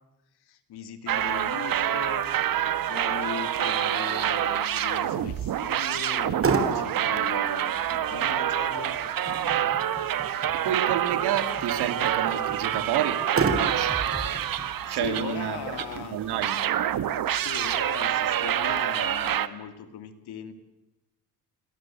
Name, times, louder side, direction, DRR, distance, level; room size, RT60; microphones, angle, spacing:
voice 1, 0.4-9.0 9.2-9.7 14.9-16.3 17.2-20.5, left 8 dB, 80° left, 9 dB, 3.1 m, -39 dB
sound 1, 1.1-16.0 16.4-19.5, right 11 dB, 60° right, 1.5 m, -27 dB
Motor vehicle (road), 6.0-19.0, right 4 dB, 35° right, 3.6 m, -35 dB
sound 2, 7.4-16.7, equal, ahead, 7.1 m, -44 dB
voice 2, 10.6-13.2 13.5-14.0 14.9-15.6 15.9-16.6, right 10 dB, 90° right, 9 dB, 3.0 m, -29 dB
29.0 x 23.0 x 7.9 m, 0.99 s
cardioid pair, 115°, 38 cm